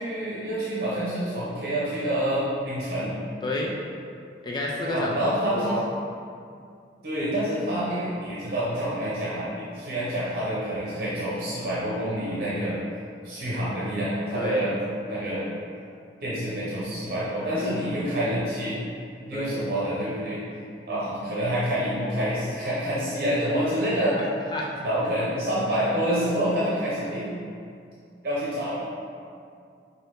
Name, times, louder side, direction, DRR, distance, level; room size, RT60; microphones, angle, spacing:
voice 1, 0.0-3.1 4.9-5.8 7.0-12.8 13.2-14.8 15.1-15.5 16.2-18.8 19.3-20.4 20.9-24.2 24.8-27.3 28.2-28.8, equal, 55° right, -8 dB, 0.8 m, -27 dB
voice 2, 3.4-3.7 4.4-5.2 5.5-5.9 14.3-14.7 17.4-17.7 19.3-19.6 24.5-24.7, left 1 dB, 25° left, -2 dB, 0.4 m, -30 dB
5.7 x 2.7 x 3.2 m, 2.4 s
head